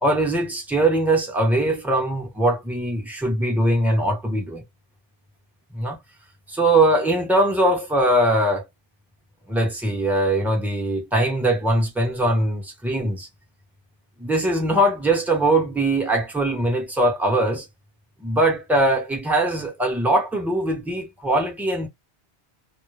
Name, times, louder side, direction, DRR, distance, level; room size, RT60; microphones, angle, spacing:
voice 1, 0.0-4.6 5.7-6.0 6.5-8.6 9.5-13.3 14.2-17.7 18.2-21.9, right 1 dB, ahead, 0.8 m, -21 dB
2.3 x 2.1 x 3.0 m
omnidirectional pair, 1.1 m